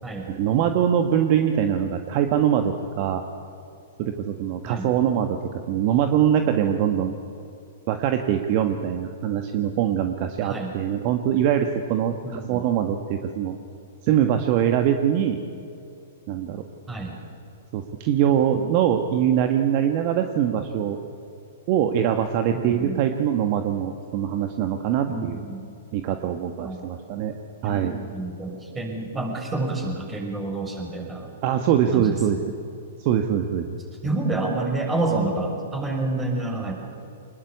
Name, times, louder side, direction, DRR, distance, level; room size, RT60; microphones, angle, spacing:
voice 1, 0.3-3.2 4.0-7.1 7.9-13.5 14.0-15.4 16.3-16.6 17.7-21.0 21.7-25.4 25.9-27.3 27.6-28.0 31.4-32.4 33.0-33.8, right 9 dB, 45° right, 6 dB, 1.5 m, -23 dB
voice 2, 10.4-10.7 12.2-12.6 16.9-17.2 22.5-23.0 25.1-25.6 26.6-26.9 27.6-31.3 31.9-32.6 34.0-36.8, right 2 dB, 15° right, 1 dB, 6.3 m, -29 dB
25.5 x 21.0 x 8.7 m, 2.5 s
hypercardioid pair, 115°, 0 cm